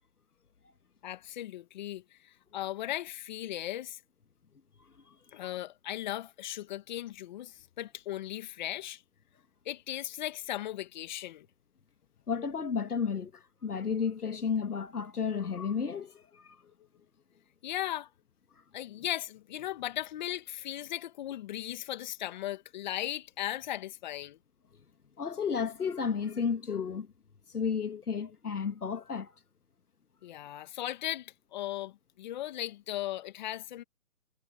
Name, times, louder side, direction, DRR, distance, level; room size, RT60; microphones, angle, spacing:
voice 1, 1.0-4.0 5.3-9.0 9.7-11.5 17.6-18.1 18.7-24.4 30.2-33.8, left 13 dB, 30° left, 2.3 m, -37 dB
voice 2, 12.3-16.6 25.2-27.1 27.5-29.3, left 6 dB, 85° left, 1.8 m, -32 dB
hypercardioid pair, 155°, 44 cm